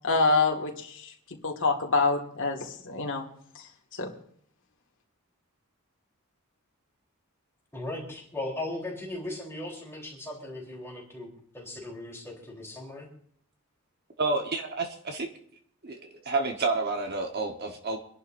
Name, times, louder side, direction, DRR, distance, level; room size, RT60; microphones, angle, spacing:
voice 1, 0.0-1.1 1.4-3.3 3.9-4.1, left 3 dB, 60° left, 2 dB, 1.9 m, -26 dB
voice 2, 7.7-11.3 11.5-13.1, left 1 dB, 10° left, -3 dB, 3.7 m, -37 dB
voice 3, 14.2-15.3 15.8-18.0, right 3 dB, 45° right, 4 dB, 1.2 m, -29 dB
26.5 x 11.0 x 2.6 m, 0.64 s
head